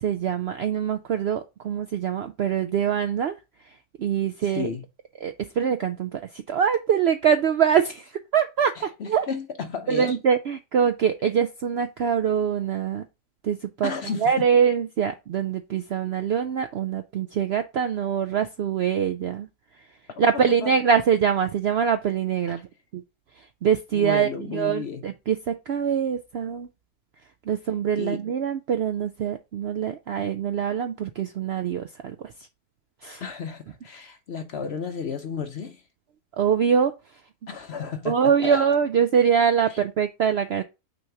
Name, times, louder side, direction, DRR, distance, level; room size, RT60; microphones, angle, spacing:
voice 1, 0.0-3.4 3.7-3.8 4.0-4.7 5.2-9.3 9.9-13.1 13.4-19.5 20.2-22.7 22.9-23.0 23.4-26.7 27.5-32.3 33.0-33.2 36.4-36.9 38.1-40.6, right 7 dB, 70° right, 0.6 m, -24 dB
voice 2, 4.4-4.9 8.8-10.2 13.8-14.3 20.1-20.7 22.5-22.6 23.9-25.0 28.0-28.2 33.2-35.8 37.5-38.6 39.7-39.8, left 6 dB, 60° left, 0.7 m, -33 dB
6.1 x 3.0 x 5.8 m
omnidirectional pair, 1.6 m